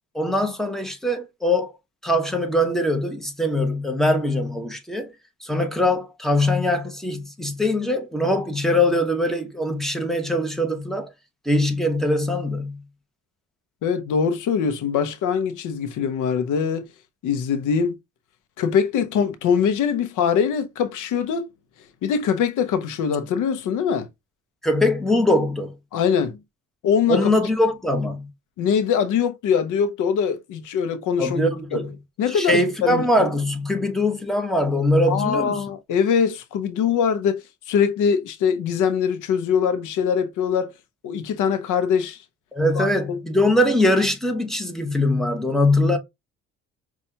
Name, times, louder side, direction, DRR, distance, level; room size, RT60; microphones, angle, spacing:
voice 1, 0.1-1.7 2.0-5.1 5.4-11.1 11.4-12.8 24.6-25.7 27.1-28.3 31.2-31.9 32.3-35.6 42.5-46.0, left 1 dB, ahead, 1.0 m, -22 dB
voice 2, 13.8-16.9 17.2-18.0 18.6-21.5 22.0-24.1 25.9-26.4 26.8-27.3 28.6-31.8 32.2-33.3 35.1-37.4 37.7-40.7 41.0-42.2 42.7-42.9, left 7 dB, 85° left, 0.7 m, -22 dB
5.4 x 2.4 x 2.8 m
cardioid pair, 90°, 30 cm